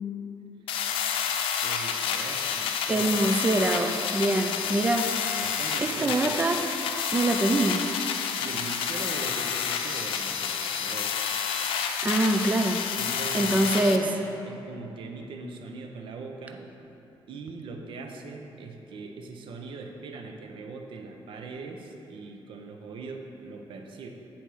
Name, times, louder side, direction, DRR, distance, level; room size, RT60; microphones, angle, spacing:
sound 1, 0.7-14.0, left 7 dB, 90° left, 0.5 m, -29 dB
voice 1, 1.6-3.2 4.2-4.9 5.4-6.6 8.4-11.1 13.0-16.7 17.3-24.1, right 3 dB, 70° right, 3 dB, 0.8 m, -41 dB
voice 2, 2.9-5.1 5.8-6.6 7.1-7.9 12.0-12.8 13.3-14.1, right 2 dB, 15° right, 5 dB, 0.4 m, -24 dB
8.2 x 4.4 x 6.3 m, 3.0 s
cardioid pair, 120°, 9 cm